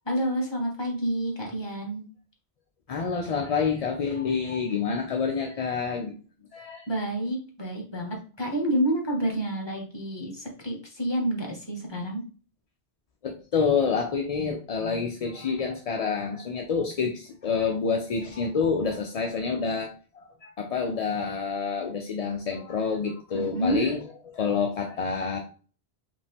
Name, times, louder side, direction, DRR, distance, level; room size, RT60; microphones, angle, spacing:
voice 1, 0.0-2.0 6.9-12.2 23.3-23.8, right 1 dB, 25° left, 2 dB, 1.2 m, -29 dB
voice 2, 2.9-6.1 6.5-6.9 13.2-24.0 24.3-25.4, left 5 dB, 50° left, 2 dB, 0.5 m, -28 dB
5.1 x 2.6 x 3.4 m, 0.38 s
omnidirectional pair, 1.1 m